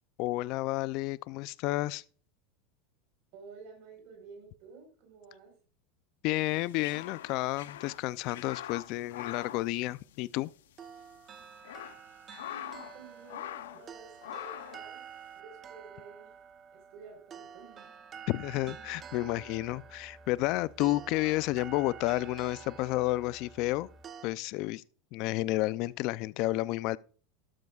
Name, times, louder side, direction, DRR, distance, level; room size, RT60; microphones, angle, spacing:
voice 1, 0.2-2.0 6.2-10.5 18.3-23.9 24.2-24.8 25.1-27.0, left 18 dB, 55° left, 0.5 m, -31 dB
voice 2, 3.3-5.5 12.4-15.0 15.3-16.3 16.7-17.9, right 5 dB, 60° right, 4.4 m, -52 dB
sound 1, 6.4-10.5 10.8-10.9 11.4-13.0 13.3-13.9 14.2-14.9, left 12 dB, 90° left, 0.7 m, -43 dB
sound 2, 10.8-24.3, right 8 dB, 30° right, 0.9 m, -49 dB
sound 3, 18.4-24.3, left 1 dB, ahead, 1.4 m, -57 dB
12.5 x 12.0 x 2.4 m
supercardioid pair, 125°, 0 cm